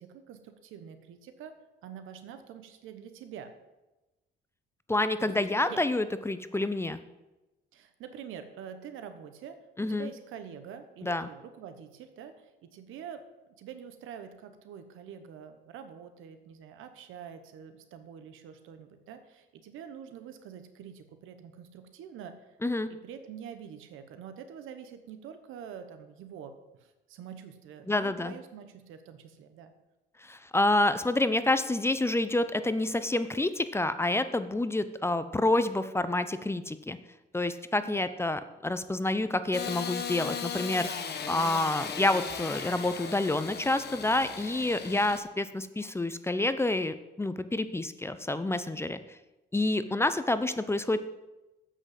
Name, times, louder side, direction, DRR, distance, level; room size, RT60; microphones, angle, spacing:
voice 1, 0.0-3.5 5.2-5.3 5.7-5.8 7.7-22.6 22.9-29.7 37.8-38.1 49.9-50.1, right 8 dB, 90° right, 9 dB, 1.1 m, -46 dB
voice 2, 4.9-7.0 9.8-10.1 11.0-11.3 22.6-22.9 27.9-28.3 30.2-37.0 37.3-40.9 41.3-49.0 49.5-51.0, left 2 dB, 10° left, 12 dB, 0.6 m, -28 dB
Engine starting / Sawing, 39.5-45.2, left 6 dB, 55° left, 1.1 m, -37 dB
7.9 x 6.3 x 7.5 m, 1.0 s
cardioid pair, 90°, 20 cm